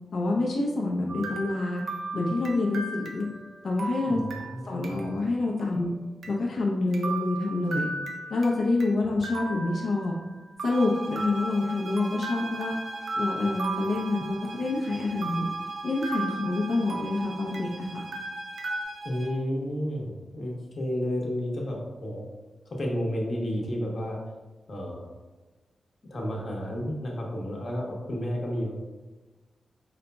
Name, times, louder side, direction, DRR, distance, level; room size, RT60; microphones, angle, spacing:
voice 1, 0.1-1.8 2.1-3.3 3.6-5.9 6.3-7.9 8.3-10.1 10.6-12.7 13.1-15.5 15.8-18.0, left 2 dB, 65° left, -2 dB, 0.6 m, -27 dB
sound 1, 1.1-5.3 5.6-5.7 6.2-6.3 6.9-8.9 9.2-10.3 10.6-14.8 15.2-17.8 18.1-18.8, right 2 dB, 85° right, 0.6 m, -36 dB
voice 2, 4.0-5.0 19.0-22.3 22.7-24.2 24.7-25.1 26.1-28.8, equal, 45° left, -2 dB, 1.0 m, -31 dB
sound 2, 10.7-19.4, right 3 dB, 65° right, 0.8 m, -42 dB
4.9 x 2.3 x 3.9 m, 1.2 s
wide cardioid pair, 125°, 0 cm